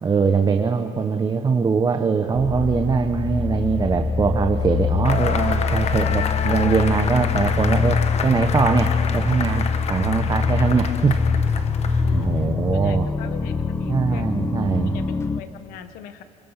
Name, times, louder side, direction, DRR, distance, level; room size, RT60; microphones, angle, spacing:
voice 1, 0.0-11.2 11.8-13.0 13.9-15.0, right 5 dB, 30° right, 5 dB, 1.1 m, -22 dB
sound 1, 2.3-15.4, left 5 dB, 20° left, 0.8 m, -24 dB
Cheering / Applause / Crowd, 5.1-12.3, left 7 dB, 45° left, 1.2 m, -29 dB
voice 2, 12.0-14.3 14.8-16.2, left 8 dB, 80° left, 10 dB, 1.2 m, -40 dB
27.5 x 21.0 x 5.8 m, 2.8 s
cardioid pair, 100°, 15 cm